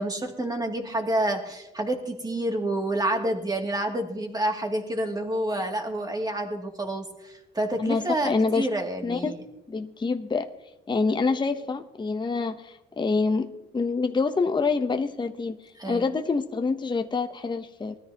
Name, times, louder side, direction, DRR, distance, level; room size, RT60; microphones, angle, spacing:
voice 1, 0.0-9.4 15.8-16.1, right 1 dB, 20° right, 2 dB, 2.5 m, -28 dB
voice 2, 7.8-8.7 9.0-9.3 9.7-10.5 10.9-15.6 15.9-18.0, left 4 dB, 25° left, 7 dB, 0.8 m, -26 dB
20.0 x 13.0 x 2.9 m, 0.95 s
cardioid pair, 90°, 20 cm